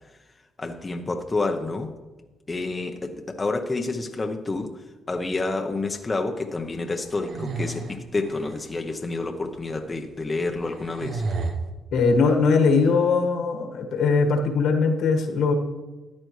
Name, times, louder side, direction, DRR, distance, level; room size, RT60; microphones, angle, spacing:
voice 1, 0.6-1.9 2.5-4.7 5.1-11.2, left 3 dB, 25° left, 3 dB, 0.9 m, -29 dB
sound 1, 7.1-8.8 9.5-9.6 10.4-11.5, right 3 dB, 65° right, 1.0 m, -32 dB
voice 2, 11.9-15.5, left 4 dB, 75° left, 3 dB, 1.6 m, -20 dB
13.5 x 9.6 x 3.2 m, 1.2 s
cardioid pair, 90°, 0 cm